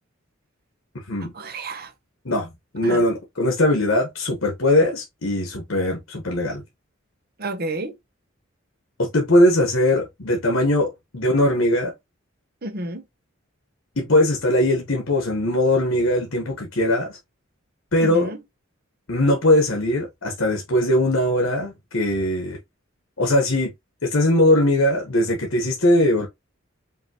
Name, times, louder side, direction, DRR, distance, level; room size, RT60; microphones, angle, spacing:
voice 1, 1.3-1.9 2.8-3.0 7.4-7.9 12.6-13.0 18.0-18.4, right 2 dB, 50° right, 0.9 m, -30 dB
voice 2, 2.7-6.6 9.0-11.9 14.0-17.1 17.9-18.3 19.1-22.6 23.2-23.7 24.0-26.3, left 1 dB, 70° left, 1.2 m, -20 dB
5.2 x 2.8 x 2.9 m
head